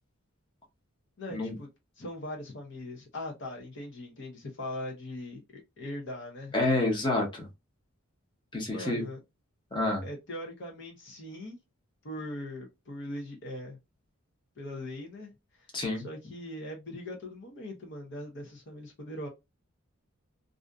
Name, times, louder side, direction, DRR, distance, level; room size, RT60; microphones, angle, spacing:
voice 1, 1.2-1.7 2.0-6.6 8.7-9.2 10.0-11.6 12.0-13.8 14.6-15.7 16.0-19.3, left 1 dB, 55° left, 0.6 m, -40 dB
voice 2, 6.5-7.5 8.5-9.0 9.7-10.0 15.7-16.1, left 2 dB, 20° left, 0.8 m, -28 dB
2.5 x 2.5 x 2.2 m
head